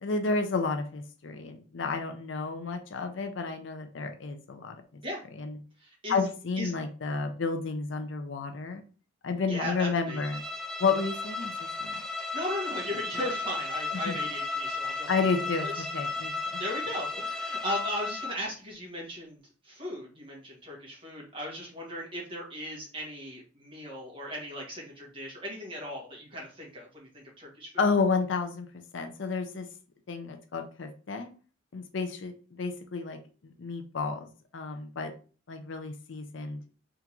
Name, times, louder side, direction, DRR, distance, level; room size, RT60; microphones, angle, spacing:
voice 1, 0.0-5.0 5.4-5.5 6.1-8.8 9.2-10.4 10.8-12.0 13.9-14.2 15.1-16.6 27.8-28.7 28.9-29.7 30.1-31.3 31.7-35.1 35.5-36.6, left 4 dB, 65° left, 7 dB, 0.5 m, -31 dB
voice 2, 5.8-6.2 6.6-6.7 9.5-10.2 12.3-15.3 15.6-15.9 16.6-19.4 19.6-27.9, equal, 25° right, -3 dB, 1.6 m, -37 dB
Bowed string instrument, 10.1-18.5, left 3 dB, 5° left, 0.4 m, -34 dB
3.7 x 3.5 x 3.0 m, 0.38 s
head